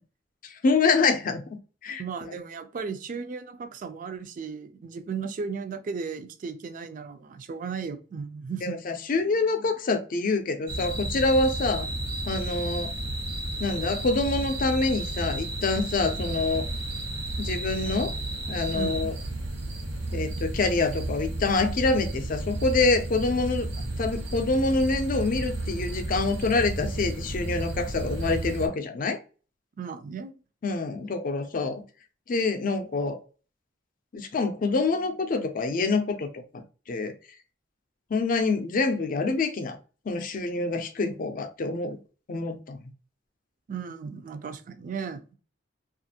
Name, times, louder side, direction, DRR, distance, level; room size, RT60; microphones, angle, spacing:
voice 1, 0.4-1.4 1.8-2.0 8.6-11.9 12.3-12.9 13.6-16.7 17.4-18.2 18.5-19.1 20.1-23.7 24.0-29.2 30.6-31.8 32.3-33.2 34.1-36.3 36.9-37.1 38.1-39.8 40.1-42.0 42.3-42.8, left 3 dB, 50° left, 0.5 m, -26 dB
voice 2, 2.0-8.8 18.7-19.0 29.8-30.3 43.7-45.3, right 5 dB, 45° right, 0.3 m, -35 dB
sound 1, 10.7-28.7, right 2 dB, 85° right, 1.0 m, -32 dB
2.5 x 2.4 x 2.7 m
head